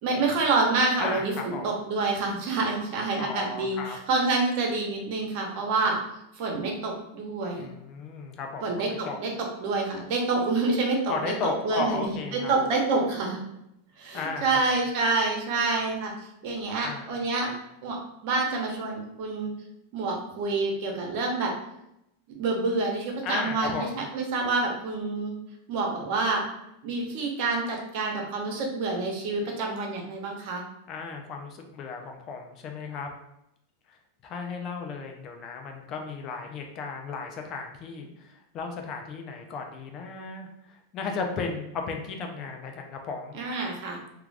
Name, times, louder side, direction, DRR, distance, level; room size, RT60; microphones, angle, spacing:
voice 1, 0.0-5.9 6.4-7.7 8.6-9.3 9.6-11.3 11.6-12.2 12.5-13.4 14.0-16.1 16.4-17.5 17.8-19.5 19.9-21.5 22.4-25.3 25.7-26.4 26.8-30.6 43.3-44.0, right 3 dB, 55° right, 1 dB, 0.8 m, -27 dB
voice 2, 1.0-1.7 3.2-4.0 7.6-9.2 11.1-12.5 14.1-14.8 16.8-17.1 23.2-24.0 30.9-33.1 33.9-43.4, left 4 dB, 40° left, 3 dB, 0.5 m, -35 dB
2.4 x 2.3 x 3.3 m, 0.82 s
hypercardioid pair, 125°, 0 cm